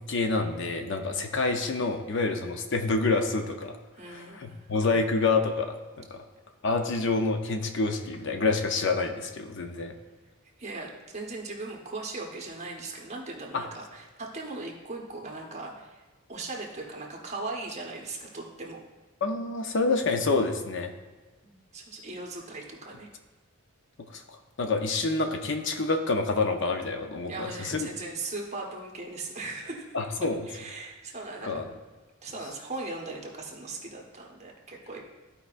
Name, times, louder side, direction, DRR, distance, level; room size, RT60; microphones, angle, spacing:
voice 1, 0.1-3.8 4.1-6.2 6.6-9.9 13.5-13.6 19.2-20.9 24.1-27.9 29.9-30.4 31.4-31.7, left 3 dB, 55° left, 5 dB, 0.6 m, -27 dB
voice 2, 3.9-4.7 10.6-16.0 16.3-18.8 21.4-23.1 27.3-30.0 30.5-31.7 32.2-35.0, right 3 dB, 30° right, -1 dB, 1.1 m, -39 dB
14.0 x 5.0 x 2.5 m, 1.2 s
head